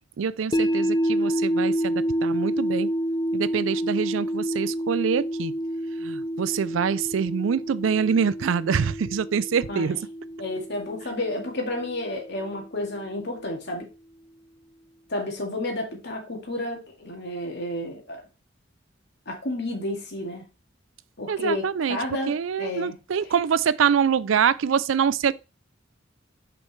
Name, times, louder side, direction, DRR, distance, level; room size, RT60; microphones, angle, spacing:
voice 1, 0.2-2.9 3.3-5.5 6.0-10.0 21.3-22.0 22.3-25.3, right 7 dB, 80° right, 0.4 m, -25 dB
sound 1, 0.5-12.6, equal, 20° left, 0.4 m, -28 dB
voice 2, 9.7-10.0 10.4-13.9 15.1-18.2 19.3-20.4 21.2-22.3 22.6-23.0, left 1 dB, 60° left, 2.1 m, -31 dB
6.4 x 5.2 x 3.2 m
head